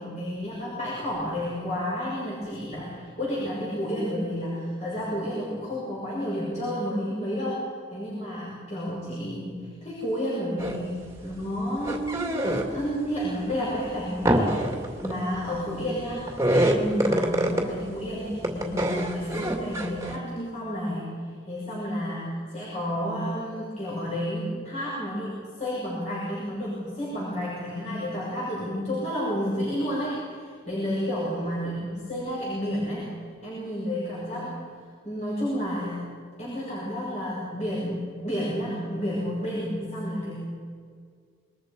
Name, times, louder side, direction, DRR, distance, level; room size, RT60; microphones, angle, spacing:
voice 1, 0.0-21.1 21.5-33.1 33.4-34.7 35.0-36.1 36.4-40.5, equal, 35° left, -7 dB, 6.4 m, -31 dB
sound 1, 10.6-10.9 11.2-12.9 13.4-18.0 18.3-20.2, right 1 dB, 15° right, 2.3 m, -26 dB
27.0 x 22.5 x 5.2 m, 2.1 s
head